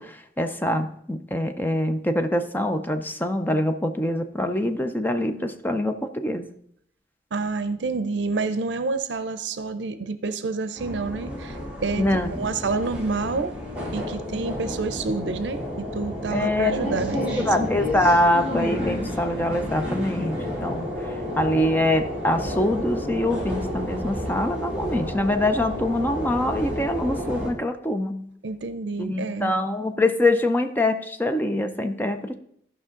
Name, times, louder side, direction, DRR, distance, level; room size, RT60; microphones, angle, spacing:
voice 1, 0.0-6.5 12.0-12.3 16.3-16.7 17.4-28.3 29.0-32.3, left 1 dB, 10° left, 8 dB, 0.5 m, -24 dB
voice 2, 7.3-13.6 13.9-17.7 28.4-29.5, right 3 dB, 85° right, 11 dB, 0.6 m, -28 dB
sound 1, 10.8-27.5, left 1 dB, 5° right, 2.3 m, -31 dB
14.5 x 5.5 x 3.7 m, 0.67 s
head